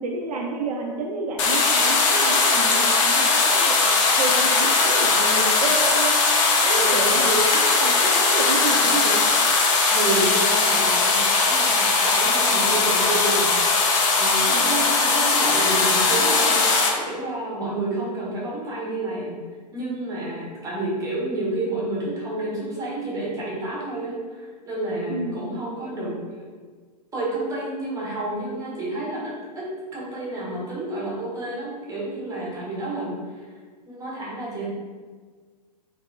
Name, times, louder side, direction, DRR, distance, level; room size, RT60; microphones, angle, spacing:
voice 1, 0.0-3.9 4.2-6.1 6.6-9.2 12.5-12.8 25.1-25.4, right 2 dB, 65° right, 0 dB, 0.5 m, -29 dB
sound 1, 1.4-16.9, left 3 dB, 50° left, 0.7 m, -19 dB
voice 2, 6.8-7.2 9.9-19.3 19.7-26.4 27.1-33.5 33.9-34.7, right 2 dB, 15° right, -5 dB, 1.3 m, -30 dB
3.5 x 3.3 x 2.4 m, 1.5 s
figure-of-eight pair, 105°, 21 cm